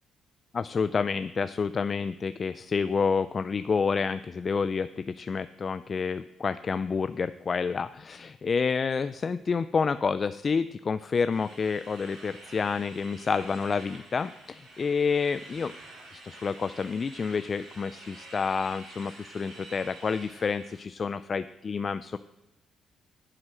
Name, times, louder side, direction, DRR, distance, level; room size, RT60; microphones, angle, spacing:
voice 1, 0.5-15.7 16.1-22.2, left 5 dB, 40° left, 13 dB, 0.4 m, -29 dB
sound 1, 11.3-20.8, right 2 dB, 75° right, 4.2 m, -49 dB
9.7 x 7.9 x 6.3 m, 0.95 s
cardioid pair, 90°, 0 cm